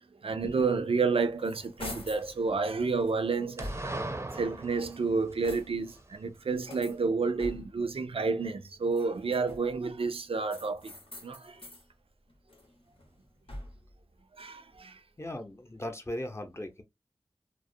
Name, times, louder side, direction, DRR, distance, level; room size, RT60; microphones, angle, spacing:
voice 1, 0.2-3.9 4.3-10.9 11.2-11.6 14.4-14.9, right 4 dB, 90° right, 0.3 m, -30 dB
sound 1, 1.0-2.3 2.9-4.2 4.8-6.0 6.6-7.9 8.8-9.8 10.5-11.9 12.3-13.9, left 1 dB, 75° left, 0.8 m, -45 dB
sound 2, 1.8-2.7 3.6-6.0, right 2 dB, 30° right, 0.5 m, -40 dB
voice 2, 15.2-16.8, left 1 dB, 30° left, 0.6 m, -38 dB
2.3 x 2.0 x 2.6 m
wide cardioid pair, 45°, 9 cm